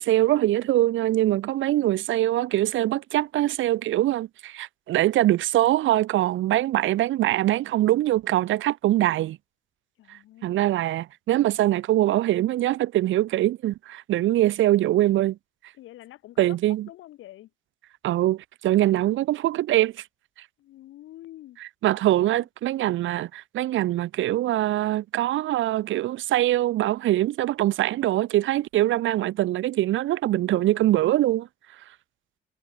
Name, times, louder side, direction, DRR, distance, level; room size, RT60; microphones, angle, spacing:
voice 1, 0.0-9.4 10.4-15.4 16.4-16.9 18.0-19.9 21.8-31.5, right 14 dB, 75° right, 0.9 m, -23 dB
voice 2, 10.0-10.6 15.8-17.5 20.6-21.6 22.1-22.5 30.3-30.8, left 14 dB, 85° left, 6.9 m, -47 dB
cardioid pair, 90°, 20 cm